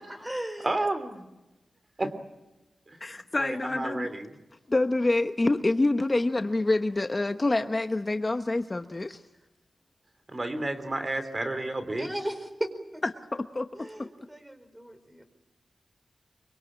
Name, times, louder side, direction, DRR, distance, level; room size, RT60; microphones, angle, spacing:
voice 1, 0.1-0.7 12.0-13.0 13.7-15.2, right 1 dB, 10° right, 9 dB, 4.7 m, -36 dB
voice 2, 0.6-1.3 2.0-2.1 2.9-4.3 10.3-12.1, right 2 dB, 30° right, 9 dB, 3.0 m, -31 dB
voice 3, 3.0-4.1 4.7-9.2 13.3-14.1, left 2 dB, 30° left, 7 dB, 1.0 m, -27 dB
25.0 x 24.5 x 8.8 m, 1.0 s
wide cardioid pair, 100°, 0 cm